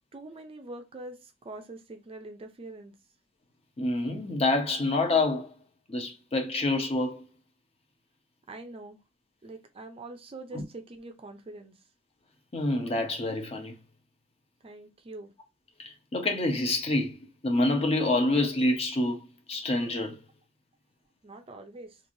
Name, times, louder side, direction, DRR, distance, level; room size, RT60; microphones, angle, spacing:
voice 1, 0.1-2.9 8.5-9.0 9.4-11.8 14.6-15.3 21.2-22.0, right 2 dB, 30° right, 0.4 m, -44 dB
voice 2, 3.8-5.5 5.9-7.2 10.5-10.6 12.5-13.8 15.8-20.2, left 2 dB, 30° left, 0.6 m, -27 dB
3.1 x 2.5 x 2.6 m
head